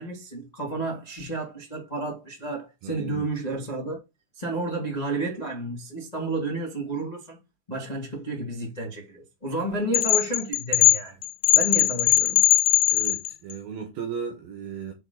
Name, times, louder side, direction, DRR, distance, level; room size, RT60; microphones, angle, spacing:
voice 1, 0.0-4.0 4.3-7.4 7.7-11.2 11.5-12.4, right 2 dB, 25° left, 0.8 m, -31 dB
voice 2, 2.8-3.3 12.9-14.9, right 7 dB, 70° right, 2.4 m, -35 dB
sound 1, 9.9-13.5, left 19 dB, 90° left, 3.3 m, -20 dB
7.3 x 5.3 x 4.0 m
omnidirectional pair, 5.9 m